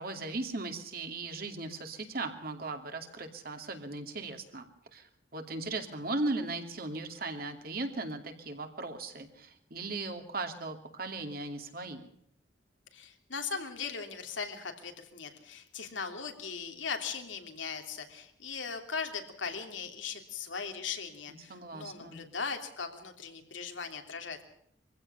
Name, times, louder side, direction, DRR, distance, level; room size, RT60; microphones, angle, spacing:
voice 1, 0.0-4.7 4.9-12.1 21.5-22.2, right 2 dB, 50° right, 5 dB, 2.7 m, -37 dB
voice 2, 12.9-24.4, left 5 dB, 90° left, 5 dB, 3.1 m, -39 dB
24.0 x 15.5 x 6.9 m, 0.72 s
head